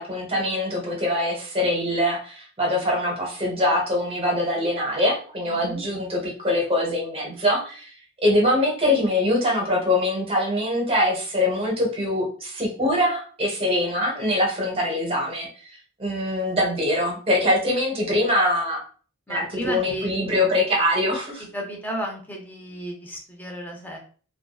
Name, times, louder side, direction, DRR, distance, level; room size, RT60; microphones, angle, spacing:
voice 1, 0.0-7.9 8.2-15.5 16.0-18.8 19.3-21.4, left 1 dB, 25° right, -1 dB, 0.8 m, -23 dB
voice 2, 5.5-5.8 19.3-20.3 21.5-24.0, equal, 10° left, 1 dB, 0.6 m, -33 dB
2.6 x 2.2 x 2.3 m, 0.40 s
head